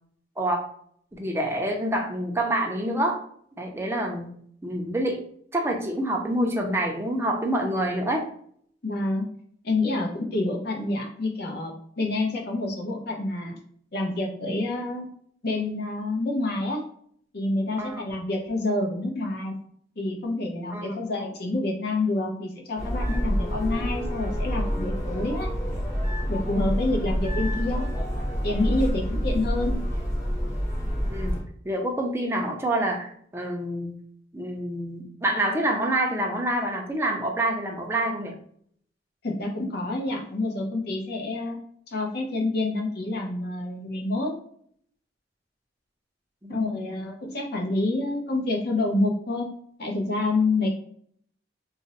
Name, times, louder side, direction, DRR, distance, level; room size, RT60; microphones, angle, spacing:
voice 1, 1.1-3.2 3.6-4.3 4.6-5.2 5.5-8.3 17.8-18.0 20.7-21.1 31.1-33.9 34.3-38.3 46.4-47.0, right 1 dB, 15° right, 2 dB, 0.5 m, -27 dB
voice 2, 8.8-9.3 9.6-13.6 13.9-15.1 15.4-16.8 17.3-19.6 20.0-25.5 26.3-27.8 28.4-29.7 39.2-41.6 41.9-44.3 46.5-49.4 49.8-50.7, left 2 dB, 60° left, 0 dB, 0.7 m, -28 dB
sound 1, 22.8-31.4, equal, 20° left, 0.8 m, -27 dB
2.5 x 2.1 x 3.9 m, 0.63 s
head